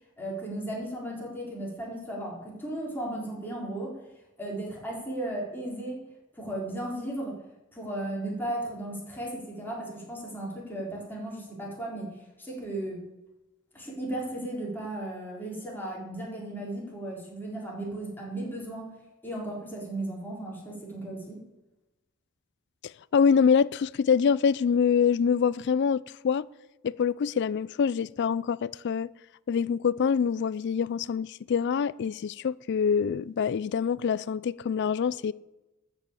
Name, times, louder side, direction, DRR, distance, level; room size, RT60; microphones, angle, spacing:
voice 1, 0.2-4.0 4.4-6.1 6.3-7.4 7.7-13.0 13.7-18.9 19.2-21.4, right 1 dB, 10° left, 4.0 m, -35 dB
voice 2, 22.8-26.5 26.8-29.1 29.5-35.3, left 6 dB, 55° left, 0.3 m, -25 dB
13.0 x 5.6 x 8.2 m
head